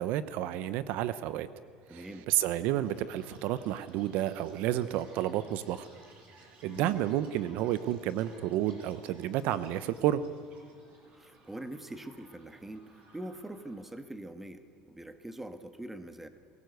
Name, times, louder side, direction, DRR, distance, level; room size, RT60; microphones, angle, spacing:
voice 1, 0.0-1.5 1.9-5.8 6.6-10.2, right 12 dB, 70° right, 15 dB, 0.8 m, -31 dB
voice 2, 1.9-2.3 6.7-7.0 11.2-16.3, right 1 dB, 10° right, 9 dB, 1.5 m, -43 dB
Chirp tweet, 2.7-13.9, right 2 dB, 50° right, 6.7 m, -59 dB
23.0 x 16.5 x 8.0 m, 2.1 s
supercardioid pair, 120°, 3 cm